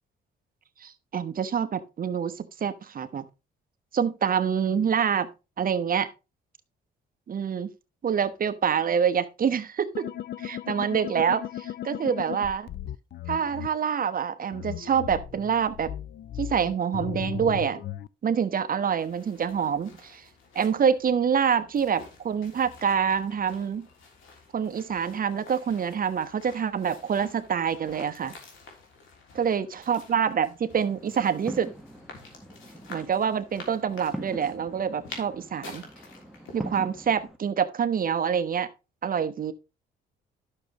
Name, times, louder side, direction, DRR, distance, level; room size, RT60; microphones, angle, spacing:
voice 1, 0.8-3.3 3.9-5.3 5.6-6.1 7.3-7.7 8.0-10.1 10.4-12.7 13.3-15.9 16.4-17.8 18.2-20.2 20.5-23.9 24.5-28.3 29.3-31.7 32.9-35.9 36.5-38.7 39.0-39.5, right 7 dB, 45° right, 1.1 m, -26 dB
sound 1, 9.9-13.7 14.5-18.1, left 11 dB, 55° left, 0.5 m, -36 dB
sound 2, 18.7-37.3, left 4 dB, 80° left, 3.2 m, -50 dB
sound 3, 30.8-37.4, right 1 dB, ahead, 1.3 m, -42 dB
12.0 x 6.5 x 3.0 m
cardioid pair, 90°, 20 cm